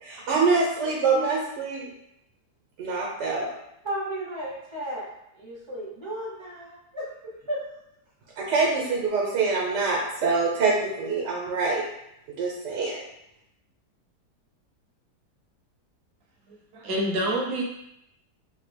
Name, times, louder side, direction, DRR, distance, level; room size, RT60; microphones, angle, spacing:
voice 1, 0.0-1.9 2.8-3.5 8.4-11.8 12.4-13.0, right 4 dB, 85° right, -3 dB, 1.5 m, -25 dB
voice 2, 3.8-5.1 5.4-7.0 7.5-7.6 8.6-8.7, right 1 dB, 25° right, -5 dB, 0.7 m, -34 dB
voice 3, 16.5-17.6, right 1 dB, 65° right, -1 dB, 1.1 m, -27 dB
4.0 x 2.8 x 3.3 m, 0.81 s
omnidirectional pair, 1.8 m